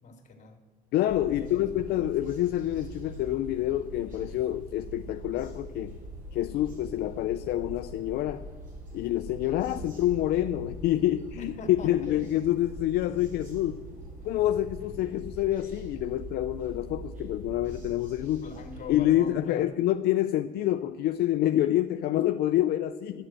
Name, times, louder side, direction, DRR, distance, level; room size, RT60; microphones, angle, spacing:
voice 1, 0.0-0.6 1.3-1.9 11.4-12.3 18.3-19.7, left 4 dB, 45° left, 4 dB, 2.5 m, -43 dB
voice 2, 0.9-5.9 6.3-8.4 8.9-11.5 11.8-13.8 14.2-18.4 18.9-23.3, left 13 dB, 75° left, 8 dB, 0.5 m, -27 dB
sound 1, 1.1-19.0, equal, 50° right, 4.8 m, -43 dB
12.5 x 7.7 x 8.8 m, 1.4 s
cardioid pair, 110°, 17 cm